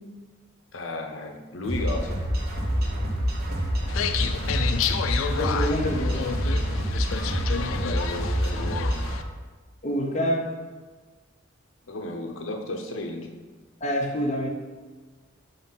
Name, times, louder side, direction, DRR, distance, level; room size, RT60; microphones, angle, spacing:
voice 1, 0.7-2.2 7.5-9.1 11.9-13.3, left 2 dB, 75° left, 3 dB, 0.8 m, -34 dB
sound 1, 1.6-9.1, equal, 55° right, 0.9 m, -27 dB
sound 2, 3.9-9.2, left 7 dB, 90° left, 0.4 m, -30 dB
voice 2, 5.4-6.8 9.8-10.5 13.8-14.5, equal, 35° left, 1 dB, 0.7 m, -27 dB
4.2 x 4.0 x 5.6 m, 1.4 s
head